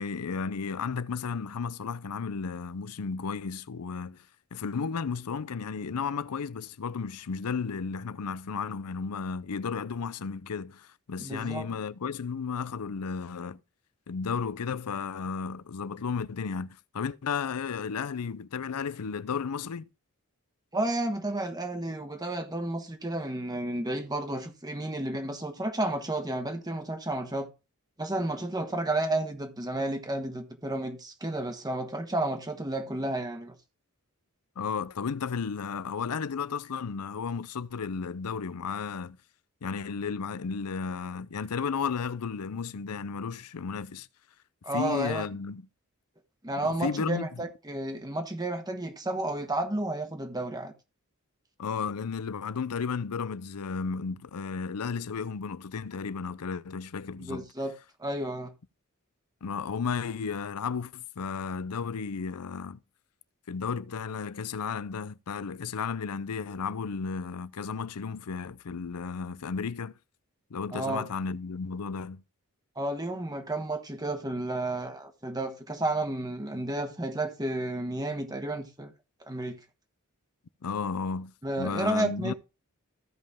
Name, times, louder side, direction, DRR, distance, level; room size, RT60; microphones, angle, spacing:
voice 1, 0.0-4.2 4.5-13.6 14.1-19.9 34.6-39.2 39.6-44.1 44.7-45.6 46.6-47.3 51.6-57.5 59.4-62.8 63.5-69.9 70.5-72.2 80.6-82.3, left 5 dB, 90° left, 0.6 m, -33 dB
voice 2, 11.2-11.7 20.7-27.5 28.0-33.5 44.6-45.3 46.4-50.7 57.2-57.7 58.0-58.5 70.7-71.1 72.7-78.9 79.2-79.6 81.4-82.3, right 1 dB, 15° right, 1.4 m, -32 dB
15.0 x 5.4 x 3.5 m
head